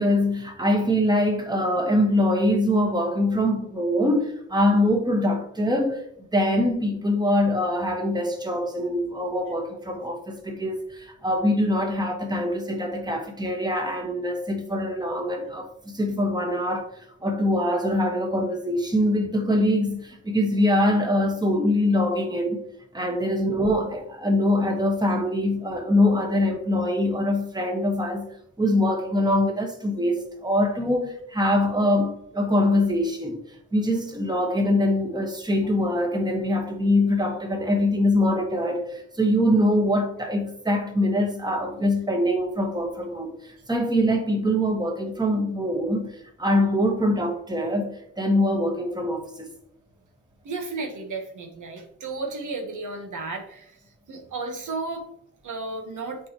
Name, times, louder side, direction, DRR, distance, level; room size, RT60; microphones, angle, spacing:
voice 1, 0.0-6.0 6.3-22.6 22.9-28.3 28.6-33.4 33.7-49.5, left 1 dB, 15° right, 1.4 m, -23 dB
voice 2, 50.4-53.7 54.1-55.0 55.4-56.2, right 3 dB, 80° right, 1.4 m, -33 dB
8.4 x 4.7 x 3.0 m
cardioid pair, 85°, 30 cm